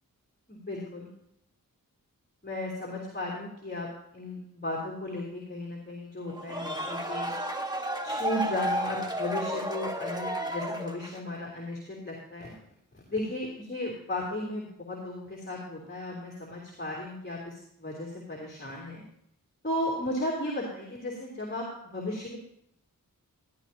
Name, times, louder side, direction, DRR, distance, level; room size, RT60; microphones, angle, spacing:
voice 1, 0.5-1.1 2.4-3.9 4.1-7.3 8.0-12.5 12.9-19.0 19.6-21.7 21.9-22.4, left 1 dB, 30° left, -3 dB, 3.1 m, -35 dB
sound 1, 6.3-11.3, right 1 dB, 10° right, 1.6 m, -32 dB
15.0 x 12.5 x 2.9 m, 0.74 s
wide cardioid pair, 55°, 35 cm